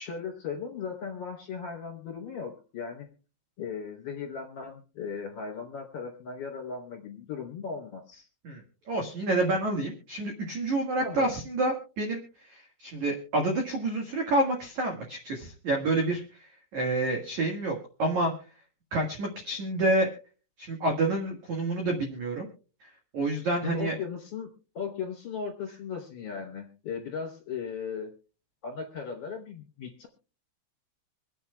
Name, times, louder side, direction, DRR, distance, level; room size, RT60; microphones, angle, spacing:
voice 1, 0.0-3.1 3.6-8.3 11.0-11.4 23.6-28.1 28.6-30.1, left 6 dB, 35° left, 0 dB, 3.8 m, -37 dB
voice 2, 8.4-18.3 18.9-20.1 20.6-22.5 22.8-22.9 23.1-24.0, right 2 dB, 60° right, 2 dB, 2.0 m, -28 dB
26.0 x 9.2 x 2.3 m, 0.36 s
omnidirectional pair, 6.0 m